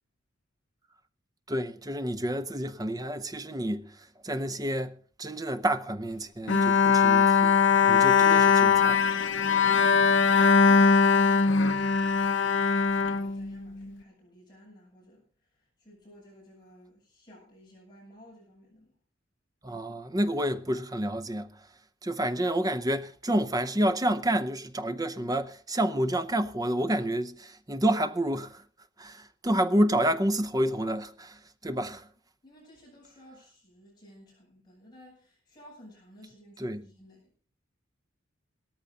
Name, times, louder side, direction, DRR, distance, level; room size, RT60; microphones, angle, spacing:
voice 1, 1.5-7.5 7.9-9.0 19.6-21.5 22.0-28.6 29.0-32.0 36.6-36.8, right 1 dB, 15° right, 0.7 m, -29 dB
Bowed string instrument, 6.5-13.9, left 5 dB, 60° left, 0.9 m, -21 dB
voice 2, 10.6-15.2 15.8-18.9 31.6-32.0 32.4-37.3, equal, 20° left, 7.8 m, -54 dB
17.0 x 14.0 x 3.9 m
head